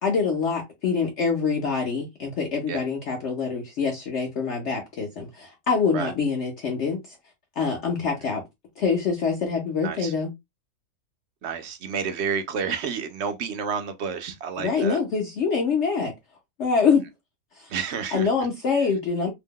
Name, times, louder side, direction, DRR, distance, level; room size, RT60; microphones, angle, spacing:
voice 1, 0.0-7.2 7.6-8.4 8.8-10.3 14.6-16.1 16.6-17.0 17.5-17.7 18.1-19.3, left 5 dB, 60° left, 0.9 m, -25 dB
voice 2, 11.4-15.0 17.7-18.3, right 6 dB, 65° right, 0.7 m, -30 dB
2.8 x 2.1 x 3.6 m
omnidirectional pair, 1.5 m